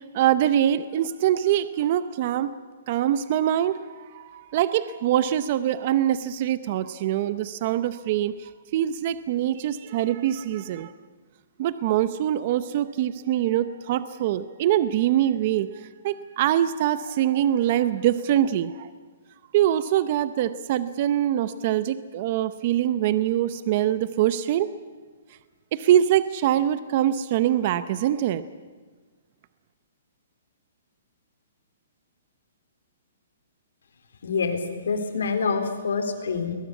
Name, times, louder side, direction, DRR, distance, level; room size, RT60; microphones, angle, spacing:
voice 1, 0.1-2.5 2.9-10.9 11.6-15.7 16.0-18.9 19.5-24.7 25.7-28.4, right 11 dB, 35° right, 14 dB, 0.7 m, -24 dB
voice 2, 34.2-36.6, left 5 dB, 85° left, 7 dB, 3.8 m, -26 dB
22.0 x 20.5 x 8.4 m, 1.4 s
hypercardioid pair, 170°, 0 cm